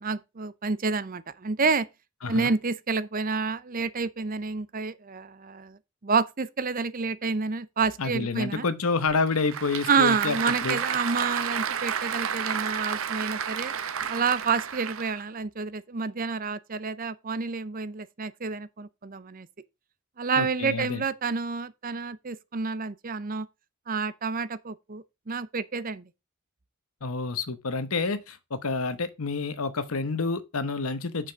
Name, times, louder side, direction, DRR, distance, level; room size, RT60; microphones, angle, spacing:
voice 1, 0.0-1.9 2.3-8.6 9.9-13.7 14.1-19.5 20.2-23.5 23.9-26.0, right 4 dB, 40° right, 0.6 m, -29 dB
voice 2, 8.0-10.8 20.4-21.0 27.0-31.3, left 4 dB, 80° left, 1.1 m, -29 dB
Applause / Crowd, 9.1-15.2, right 7 dB, 70° right, 0.8 m, -31 dB
6.9 x 6.2 x 5.2 m
head